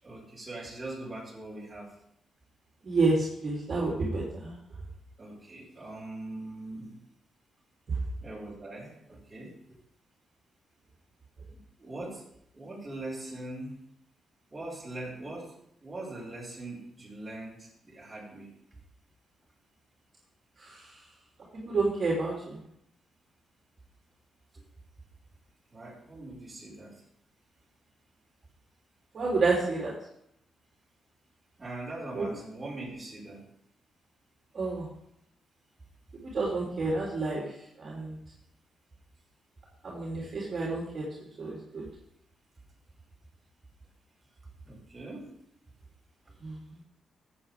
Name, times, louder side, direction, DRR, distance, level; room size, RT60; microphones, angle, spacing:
voice 1, 0.0-1.9 5.2-7.0 8.2-9.8 11.5-12.2 12.5-13.8 14.5-15.6 15.8-18.5 24.5-24.6 25.7-27.0 31.6-33.4 44.6-45.4, right 2 dB, 20° right, -4 dB, 5.0 m, -41 dB
voice 2, 2.8-4.6 20.6-20.8 21.7-22.6 29.1-29.9 32.1-32.2 34.5-34.9 36.2-37.4 37.8-38.2 39.8-41.0 41.4-41.8 46.4-46.6, right 3 dB, 45° right, -4 dB, 3.1 m, -29 dB
14.5 x 8.6 x 3.5 m, 0.73 s
cardioid pair, 105°, 0 cm